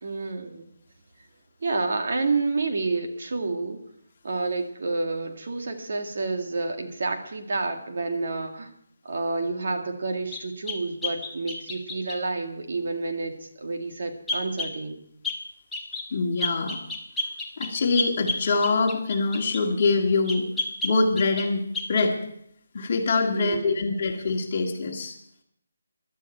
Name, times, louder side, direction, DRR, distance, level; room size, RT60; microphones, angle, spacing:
voice 1, 0.0-0.7 1.6-3.8 4.2-8.7 9.0-15.0 23.3-23.8, right 3 dB, 55° right, 4 dB, 2.0 m, -29 dB
sound 1, 10.3-12.2 14.3-14.8 15.2-15.4 15.7-16.1 16.4-19.7 20.3-21.5 21.7-22.1, left 2 dB, 5° left, 1.0 m, -31 dB
voice 2, 16.1-16.8 17.6-20.5 20.8-22.2 22.7-25.2, left 3 dB, 35° left, 1 dB, 2.0 m, -24 dB
17.0 x 12.0 x 4.5 m, 0.69 s
hypercardioid pair, 175°, 0 cm